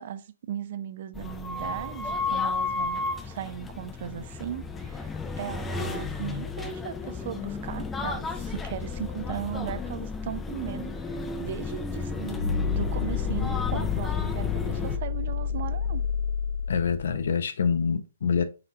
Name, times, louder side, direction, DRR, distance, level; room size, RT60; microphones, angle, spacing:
voice 1, 0.0-16.0, right 10 dB, 50° right, 0.5 m, -37 dB
sound 1, 1.1-15.0, left 4 dB, 10° left, 0.4 m, -33 dB
sound 2, 12.4-17.2, left 7 dB, 45° left, 1.5 m, -29 dB
voice 2, 16.7-18.4, left 6 dB, 65° left, 0.6 m, -26 dB
4.2 x 4.0 x 2.7 m
hypercardioid pair, 140°, 0 cm